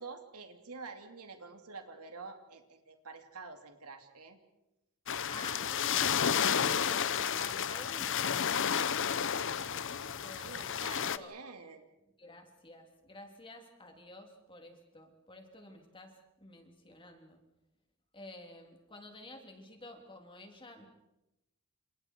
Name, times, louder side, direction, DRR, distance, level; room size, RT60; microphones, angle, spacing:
voice 1, 0.0-4.4 10.4-11.8, right 4 dB, 85° right, 6 dB, 2.9 m, -47 dB
sound 1, 5.1-11.2, left 8 dB, 60° left, 0.9 m, -31 dB
voice 2, 5.3-9.2 10.2-11.3 12.2-17.4 18.1-20.9, left 1 dB, 25° left, 3 dB, 3.5 m, -51 dB
29.5 x 27.5 x 4.7 m, 0.91 s
head